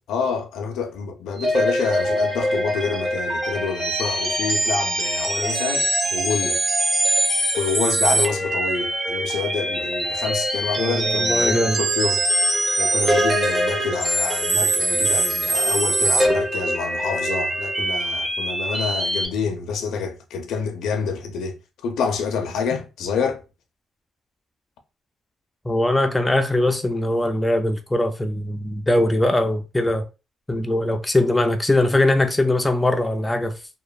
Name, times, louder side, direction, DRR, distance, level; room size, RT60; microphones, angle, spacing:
voice 1, 0.1-6.6 7.6-12.2 12.8-21.6 21.8-23.4, left 5 dB, 80° left, 0.5 m, -27 dB
sound 1, 1.4-19.3, right 1 dB, 20° right, 0.8 m, -23 dB
voice 2, 10.8-11.8 25.7-30.1 30.5-33.6, left 1 dB, 10° left, 0.3 m, -21 dB
2.9 x 2.0 x 2.3 m
cardioid pair, 90°, 0 cm